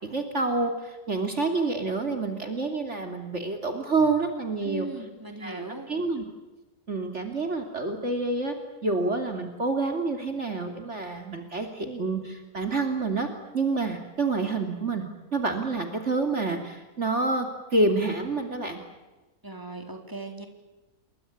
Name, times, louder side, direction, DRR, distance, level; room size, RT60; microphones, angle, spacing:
voice 1, 0.0-4.9 5.4-6.2 6.9-8.5 8.8-13.3 13.5-15.0 15.3-18.8, right 3 dB, 45° right, 5 dB, 3.2 m, -28 dB
voice 2, 4.6-5.9 19.4-20.5, right 2 dB, 15° right, 4 dB, 4.3 m, -38 dB
29.0 x 24.0 x 8.6 m, 1.1 s
omnidirectional pair, 1.6 m